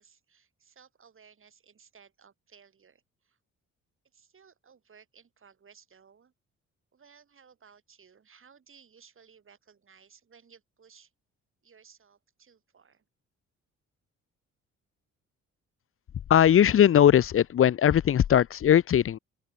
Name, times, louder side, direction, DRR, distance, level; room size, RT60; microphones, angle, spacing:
voice 1, 0.0-3.4 4.1-6.3 6.9-11.1 11.6-13.0, right 6 dB, 45° right, 7.7 m, -58 dB
voice 2, 16.3-19.2, left 10 dB, 45° left, 0.8 m, -20 dB
open air
cardioid pair, 90°, 30 cm